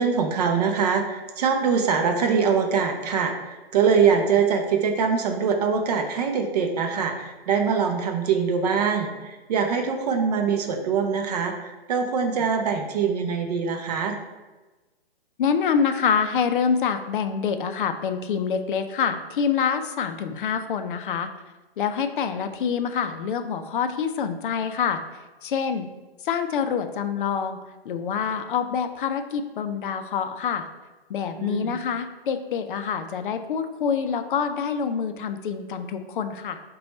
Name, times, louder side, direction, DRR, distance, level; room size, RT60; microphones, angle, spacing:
voice 1, 0.0-14.2 31.4-31.8, right 6 dB, 40° right, 4 dB, 0.5 m, -23 dB
voice 2, 15.4-21.3 21.8-25.0 25.4-25.9 26.2-27.6 27.9-30.7 31.1-36.6, left 6 dB, 55° left, 8 dB, 0.4 m, -26 dB
4.2 x 2.3 x 4.1 m, 1.2 s
hypercardioid pair, 135°, 30 cm